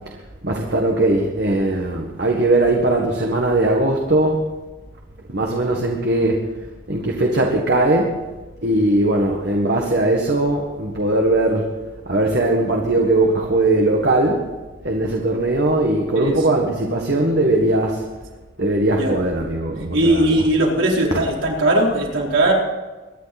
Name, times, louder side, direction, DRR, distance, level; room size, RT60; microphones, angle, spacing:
voice 1, 0.4-4.4 5.3-6.4 6.9-8.2 8.6-11.7 12.1-14.5 14.8-18.0 18.6-20.4 21.1-21.2, right 2 dB, 55° right, 0 dB, 1.7 m, -19 dB
voice 2, 19.9-22.5, right 1 dB, 80° right, -2 dB, 4.5 m, -18 dB
23.5 x 11.0 x 4.3 m, 1.2 s
head